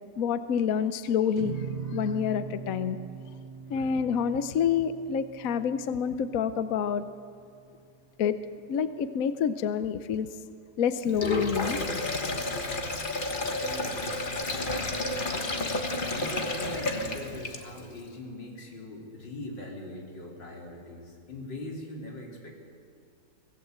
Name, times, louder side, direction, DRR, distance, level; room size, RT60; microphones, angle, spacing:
voice 1, 0.2-1.6 1.9-3.0 3.7-7.0 8.2-8.4 8.7-10.3 10.8-11.8, left 7 dB, 60° left, 11 dB, 1.1 m, -28 dB
sound 1, 1.3-7.8, right 6 dB, 60° right, 2.8 m, -41 dB
voice 2, 3.7-4.0 12.7-15.0 16.1-22.5, left 1 dB, 80° left, -1 dB, 4.3 m, -42 dB
Sink (filling or washing), 11.1-17.9, left 2 dB, 30° left, 1.4 m, -31 dB
24.0 x 17.5 x 8.0 m, 2.3 s
omnidirectional pair, 1.9 m